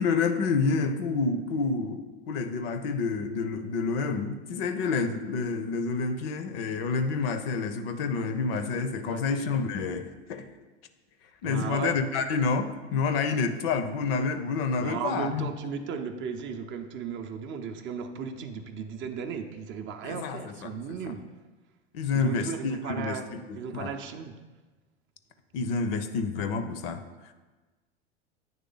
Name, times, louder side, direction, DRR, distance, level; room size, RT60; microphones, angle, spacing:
voice 1, 0.0-10.5 11.4-15.5 20.0-20.7 21.0-21.1 21.9-23.9 25.5-27.0, left 4 dB, 60° left, 0.6 m, -28 dB
voice 2, 11.4-12.0 14.8-21.3 22.1-24.4, right 6 dB, 35° right, 0.5 m, -36 dB
8.7 x 3.2 x 3.9 m
hypercardioid pair, 90°, 34 cm